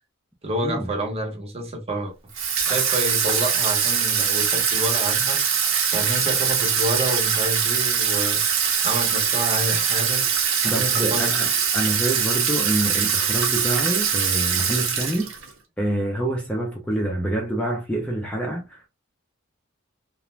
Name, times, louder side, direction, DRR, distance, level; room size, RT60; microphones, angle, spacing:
voice 1, 0.4-2.1 2.6-5.4 5.9-8.4 8.8-10.3 10.6-11.3, right 1 dB, 30° right, 0.7 m, -28 dB
Water tap faucet / Sink (filling or washing), 2.3-15.5, right 7 dB, 70° right, 0.7 m, -22 dB
voice 2, 10.6-11.5 11.7-15.3 15.8-18.9, right 1 dB, 5° left, 0.4 m, -26 dB
2.4 x 2.1 x 3.0 m
head